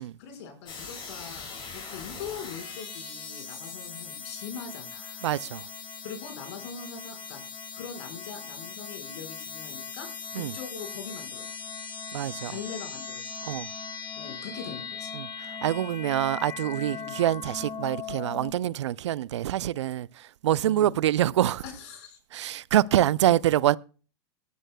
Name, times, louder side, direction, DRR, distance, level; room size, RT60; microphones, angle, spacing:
voice 1, 0.0-5.3 6.0-10.1 10.3-11.5 12.5-13.3 14.2-15.1 16.9-17.1 20.6-20.9 21.6-22.2, left 7 dB, 65° left, 5.0 m, -42 dB
sound 1, 0.7-18.5, left 5 dB, 35° left, 5.5 m, -39 dB
voice 2, 5.2-5.7 10.3-10.6 12.1-12.6 13.4-13.7 15.1-15.3 15.6-21.6 22.3-23.8, right 12 dB, 80° right, 0.5 m, -25 dB
21.0 x 12.5 x 2.2 m
hypercardioid pair, 105°, 15 cm